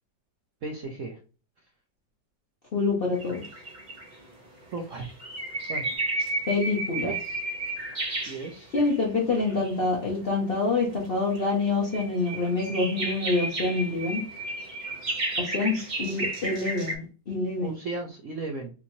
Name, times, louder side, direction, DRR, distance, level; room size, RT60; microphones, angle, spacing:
voice 1, 0.6-1.2 4.7-5.1 5.7-5.9 7.0-7.2 8.1-8.7 17.6-18.7, right 3 dB, 70° right, 1 dB, 0.7 m, -35 dB
voice 2, 2.7-3.4 6.5-7.1 8.7-14.2 15.4-17.7, left 3 dB, 50° left, -2 dB, 0.7 m, -26 dB
sound 1, 3.2-4.2 4.8-9.0 9.3-9.9 10.8-17.0, right 2 dB, 35° right, 0.8 m, -33 dB
4.3 x 2.8 x 2.7 m, 0.35 s
omnidirectional pair, 2.0 m